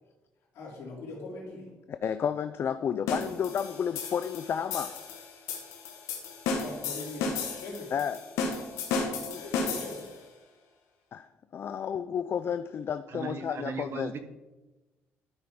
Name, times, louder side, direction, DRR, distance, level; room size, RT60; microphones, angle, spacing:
voice 1, 0.5-1.7 6.6-7.9 9.1-10.2, left 2 dB, 70° left, -2 dB, 3.1 m, -41 dB
voice 2, 1.9-5.0 7.9-8.3 11.1-11.3 11.5-14.2, left 8 dB, 50° left, 11 dB, 0.4 m, -31 dB
sound 1, 3.1-10.2, left 4 dB, 85° left, 1.4 m, -34 dB
voice 3, 13.1-14.2, right 5 dB, 55° right, 9 dB, 1.0 m, -37 dB
12.0 x 5.8 x 3.7 m, 1.1 s
cardioid pair, 85°, 5 cm